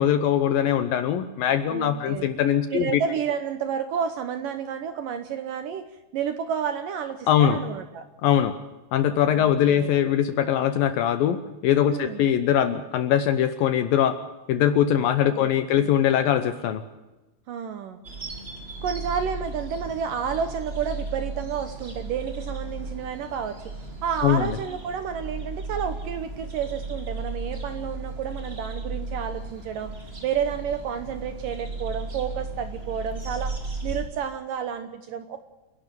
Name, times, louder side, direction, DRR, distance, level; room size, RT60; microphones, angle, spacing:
voice 1, 0.0-3.0 7.3-7.6 8.2-8.6 8.9-14.2 14.5-16.8 24.2-24.6, left 10 dB, 75° left, 10 dB, 2.2 m, -22 dB
voice 2, 1.7-2.3 2.7-5.9 6.1-8.1 9.3-10.1 11.9-12.2 15.3-15.9 17.5-18.0 18.8-23.6 24.0-29.9 30.2-33.5 33.8-35.4, right 7 dB, 70° right, 9 dB, 2.2 m, -30 dB
sound 1, 18.0-34.1, right 3 dB, 20° right, 1.8 m, -35 dB
28.5 x 11.5 x 9.2 m, 1.1 s
omnidirectional pair, 5.0 m